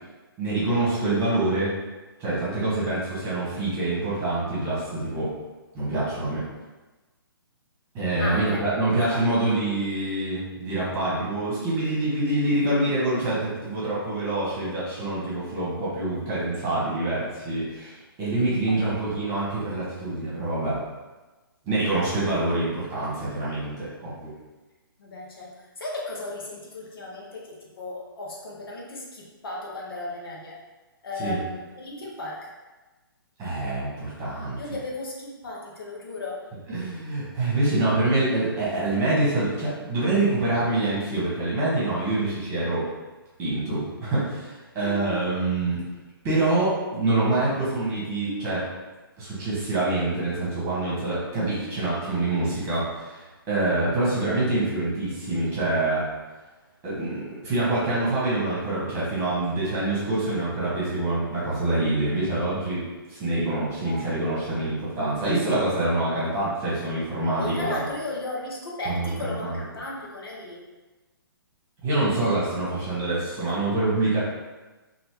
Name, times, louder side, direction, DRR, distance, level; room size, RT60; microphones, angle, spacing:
voice 1, 0.4-1.7 2.2-5.3 5.7-6.4 7.9-20.8 21.6-24.3 31.2-31.4 33.4-34.6 36.7-42.9 43.4-45.8 46.2-48.7 49.2-56.0 56.8-67.8 68.8-69.6 71.8-74.2, right 2 dB, 20° right, -8 dB, 1.4 m, -26 dB
voice 2, 8.2-8.6 9.1-9.2 18.7-19.2 25.0-30.5 31.0-32.4 34.5-36.4 44.8-45.3 63.8-64.1 67.4-70.6, left 2 dB, 70° left, -4 dB, 1.0 m, -35 dB
3.1 x 2.8 x 2.9 m, 1.2 s
hypercardioid pair, 135°, 12 cm